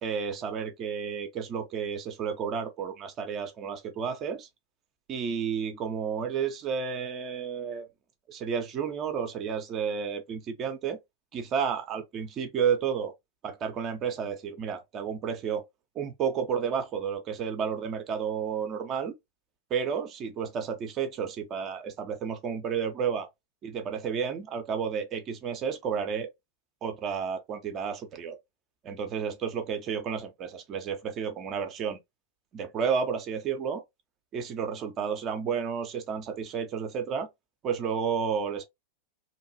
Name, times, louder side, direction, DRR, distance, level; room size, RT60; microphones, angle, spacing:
voice 1, 0.0-4.5 5.1-7.9 8.3-11.0 11.3-13.1 13.4-15.6 15.9-19.1 19.7-23.3 23.6-26.3 26.8-28.4 28.8-32.0 32.5-33.8 34.3-37.3 37.6-38.6, right 7 dB, 30° right, 0.6 m, -31 dB
2.9 x 2.4 x 2.6 m
figure-of-eight pair, 90°, 0 cm